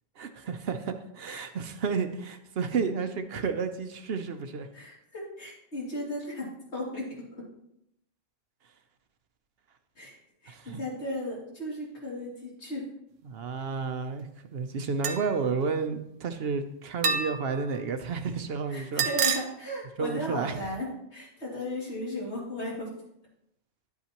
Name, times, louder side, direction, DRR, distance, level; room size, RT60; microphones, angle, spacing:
voice 1, 0.2-4.7 10.5-10.8 13.2-19.0 20.0-20.7, right 5 dB, 55° right, 8 dB, 0.8 m, -31 dB
voice 2, 4.7-7.1 7.3-7.4 10.0-10.2 10.4-12.8 18.7-20.9 21.1-22.9, left 1 dB, 55° left, -4 dB, 3.0 m, -36 dB
sound 1, 15.0-15.4 17.0-17.6 19.0-19.4, right 5 dB, 85° right, 1.1 m, -27 dB
10.5 x 8.3 x 2.9 m, 0.78 s
omnidirectional pair, 1.3 m